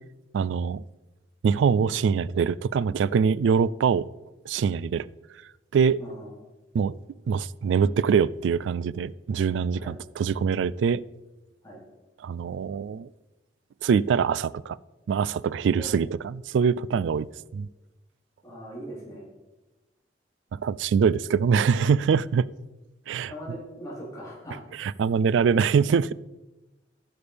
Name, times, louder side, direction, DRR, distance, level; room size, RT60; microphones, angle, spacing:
voice 1, 0.3-0.8 1.4-4.1 4.5-5.1 5.7-6.0 6.7-7.0 7.3-11.0 12.2-13.1 13.8-14.8 15.1-17.3 17.5-17.7 20.5-22.5 23.1-23.3 24.8-26.1, right 6 dB, 85° right, 20 dB, 0.3 m, -23 dB
voice 2, 6.0-6.3 9.7-9.9 11.6-11.8 15.7-16.0 18.4-19.3 23.3-24.6, equal, 20° left, -7 dB, 3.9 m, -40 dB
15.5 x 6.9 x 3.4 m, 1.1 s
head